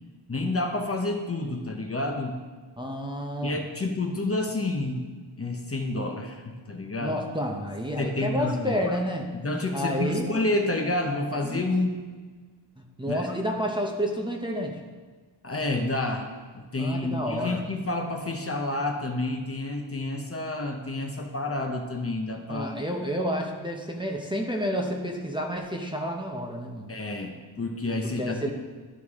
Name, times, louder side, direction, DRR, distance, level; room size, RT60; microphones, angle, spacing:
voice 1, 0.3-2.4 3.4-5.1 5.4-7.2 8.0-9.0 9.3-12.0 13.1-13.4 15.4-22.8 26.9-28.5, left 2 dB, 30° left, 2 dB, 0.8 m, -29 dB
voice 2, 2.8-3.6 7.0-10.4 11.4-11.6 12.8-14.8 16.8-17.6 22.5-26.9 28.2-28.5, equal, 10° right, -1 dB, 0.8 m, -30 dB
12.5 x 4.7 x 3.6 m, 1.4 s
wide cardioid pair, 105°, 50 cm